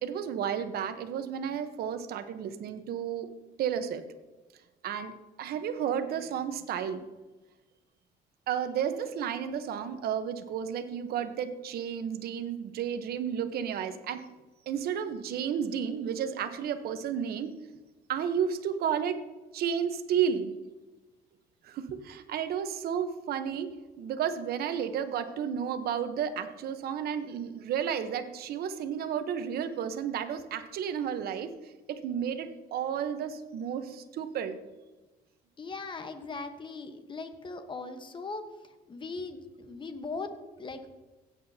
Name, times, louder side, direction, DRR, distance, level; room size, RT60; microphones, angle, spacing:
voice 1, 0.0-3.3 3.6-4.0 4.8-5.1 5.4-7.1 8.5-14.2 14.7-17.6 18.1-19.2 19.5-20.6 21.6-34.6, right 8 dB, 65° right, 9 dB, 1.0 m, -32 dB
voice 2, 35.6-41.0, left 3 dB, 30° left, 8 dB, 1.2 m, -39 dB
16.0 x 8.6 x 2.8 m, 1.2 s
cardioid pair, 110°, 17 cm